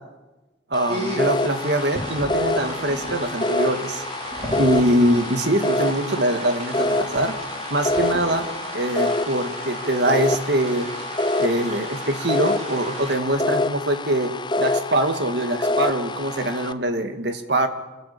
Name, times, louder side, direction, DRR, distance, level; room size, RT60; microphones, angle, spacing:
sound 1, 0.7-16.7, left 2 dB, 25° left, 0.7 m, -27 dB
voice 1, 0.7-4.0 4.6-7.4 7.7-8.5 8.7-10.9 11.4-17.7, right 1 dB, 65° right, 7 dB, 2.1 m, -23 dB
sound 2, 0.9-13.2, right 1 dB, 35° right, 4.1 m, -35 dB
27.0 x 14.5 x 8.7 m, 1.2 s
head